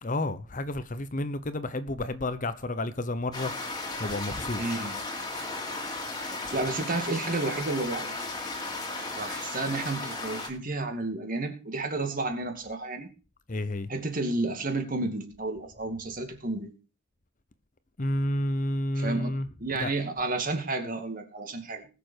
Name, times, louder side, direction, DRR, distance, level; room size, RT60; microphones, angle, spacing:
voice 1, 0.0-3.5 4.0-4.6 13.5-13.9 18.0-19.5 19.7-19.9, left 1 dB, 40° left, 0.9 m, -30 dB
sound 1, 3.3-10.5, left 2 dB, 20° left, 2.5 m, -35 dB
voice 2, 4.6-5.0 6.2-8.1 9.2-13.1 13.9-16.7 19.0-19.3 19.6-21.9, right 2 dB, 40° right, 2.3 m, -31 dB
20.0 x 6.9 x 4.6 m
head